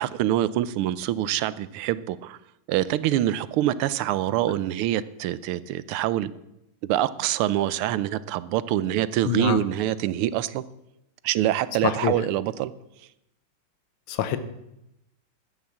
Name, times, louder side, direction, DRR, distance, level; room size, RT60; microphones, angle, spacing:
voice 1, 0.0-2.4 2.7-6.3 6.8-10.6 11.2-12.7, right 13 dB, 90° right, 16 dB, 1.5 m, -25 dB
voice 2, 9.3-9.6 11.8-12.1 14.1-14.4, left 10 dB, 80° left, 11 dB, 1.8 m, -25 dB
12.0 x 9.4 x 7.1 m, 0.87 s
omnidirectional pair, 2.3 m